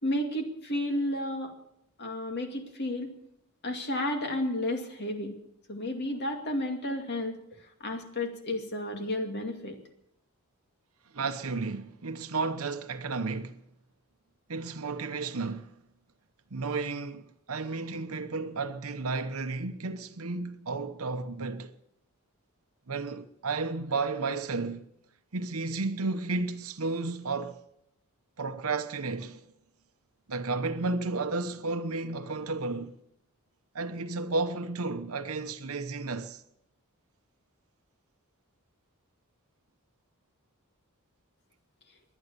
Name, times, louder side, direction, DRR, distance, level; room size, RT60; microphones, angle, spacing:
voice 1, 0.0-1.5 2.0-3.1 3.6-5.4 5.7-7.4 7.8-9.8, left 1 dB, 50° left, 2.4 m, -32 dB
voice 2, 11.1-13.6 14.5-15.7 16.5-21.7 22.9-24.8 25.3-27.6 28.4-29.5 30.3-33.0 33.7-36.4, right 3 dB, 75° right, 0.9 m, -32 dB
22.0 x 9.5 x 6.8 m
head